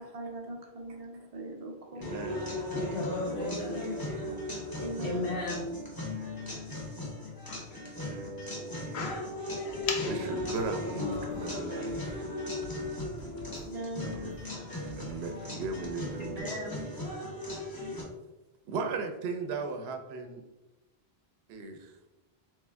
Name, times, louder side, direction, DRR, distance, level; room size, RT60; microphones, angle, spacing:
voice 1, 0.0-2.1 3.2-4.0 4.8-5.3 13.6-14.1, right 1 dB, 40° right, 1 dB, 0.7 m, -41 dB
sound 1, 2.0-18.0, left 1 dB, 20° left, 1.1 m, -37 dB
voice 2, 2.0-2.5 7.8-8.5 10.4-12.2 14.0-14.3 15.0-16.5 18.7-20.4 21.5-21.9, right 3 dB, 80° right, 6 dB, 0.8 m, -37 dB
voice 3, 2.7-4.6 5.0-5.7 16.2-16.8, left 2 dB, 65° left, -4 dB, 1.5 m, -36 dB
voice 4, 7.2-7.8 8.7-9.3 9.6-10.3 11.2-11.3, left 5 dB, 85° left, 1 dB, 1.0 m, -39 dB
sound 2, 9.7-16.4, equal, 35° left, 0.7 m, -49 dB
3.6 x 3.0 x 3.3 m, 1.0 s
omnidirectional pair, 1.1 m